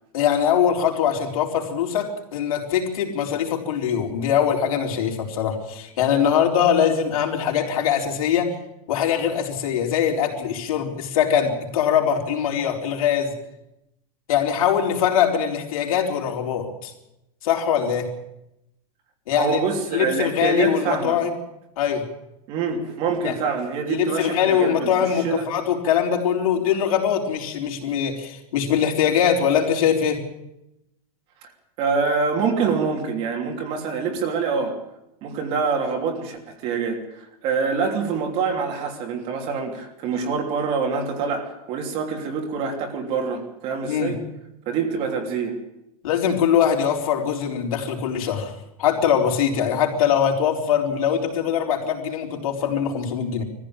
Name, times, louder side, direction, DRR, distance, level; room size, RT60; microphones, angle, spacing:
voice 1, 0.1-8.5 8.9-13.3 14.3-16.9 17.4-18.1 19.3-19.6 19.9-21.3 21.8-22.0 23.2-23.4 23.9-30.2 43.8-44.1 46.0-48.5 48.8-53.4, left 8 dB, 70° left, 1 dB, 4.2 m, -22 dB
voice 2, 19.3-21.2 22.5-24.9 25.2-25.5 31.4-31.5 31.8-34.8 35.2-44.2 44.7-45.6, right 5 dB, 30° right, 3 dB, 3.0 m, -25 dB
21.0 x 15.0 x 8.9 m, 0.86 s
supercardioid pair, 170°, 19 cm